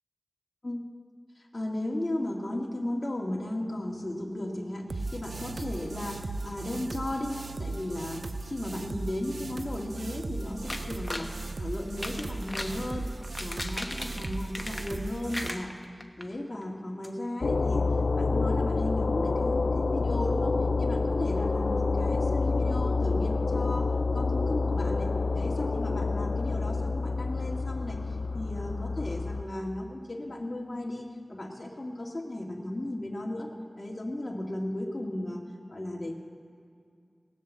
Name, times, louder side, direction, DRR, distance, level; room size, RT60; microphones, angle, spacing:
voice 1, 1.4-15.8 16.2-33.5 33.8-35.4 35.7-36.1, left 1 dB, 40° left, -1 dB, 2.0 m, -35 dB
sound 1, 4.9-15.5, right 3 dB, 75° right, 0.5 m, -37 dB
sound 2, 10.7-11.3 11.9-12.8 13.2-15.0 15.3-16.2 16.6-16.7 17.0-17.1, left 1 dB, 25° left, 1.2 m, -37 dB
sound 3, 17.4-29.4, left 3 dB, 90° left, 0.3 m, -28 dB
18.5 x 7.3 x 7.2 m, 2.3 s
wide cardioid pair, 45°, 0 cm